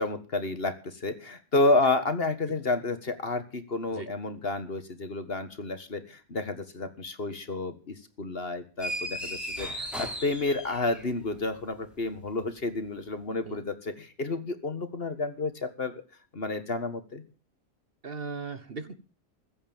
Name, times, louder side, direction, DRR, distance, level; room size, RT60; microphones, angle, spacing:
voice 1, 0.0-16.0 16.3-17.2, left 2 dB, 45° left, 10 dB, 1.8 m, -30 dB
sound 1, 8.8-11.3, equal, ahead, 3.4 m, -36 dB
voice 2, 18.0-19.0, right 4 dB, 45° right, 12 dB, 1.4 m, -37 dB
15.5 x 9.2 x 9.0 m, 0.37 s
omnidirectional pair, 1.5 m